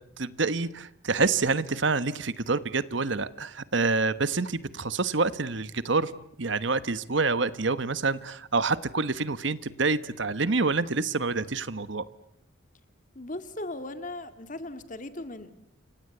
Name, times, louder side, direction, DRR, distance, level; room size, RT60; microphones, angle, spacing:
voice 1, 0.2-6.1 6.4-12.0, right 3 dB, 65° right, 15 dB, 1.2 m, -27 dB
voice 2, 13.1-15.5, left 2 dB, 40° left, 10 dB, 2.3 m, -38 dB
29.5 x 25.0 x 7.9 m, 0.74 s
head